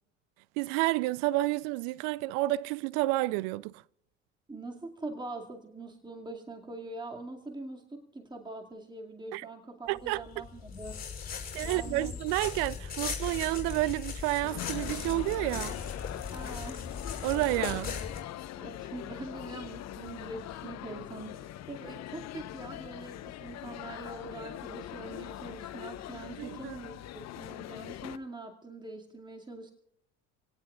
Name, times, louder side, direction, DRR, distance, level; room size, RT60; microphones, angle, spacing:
voice 1, 0.6-3.8 9.3-9.5 9.9-10.2 11.5-15.8 17.2-18.0 26.4-26.8, right 19 dB, 55° right, 0.5 m, -30 dB
voice 2, 4.5-11.0 11.6-12.2 16.3-17.0 18.6-29.7, right 2 dB, 10° right, 2.3 m, -43 dB
sound 1, 10.0-18.2, left 6 dB, 25° left, 5.7 m, -38 dB
sound 2, 14.4-28.2, left 13 dB, 45° left, 0.9 m, -42 dB
27.5 x 17.5 x 2.4 m
hypercardioid pair, 70°, 38 cm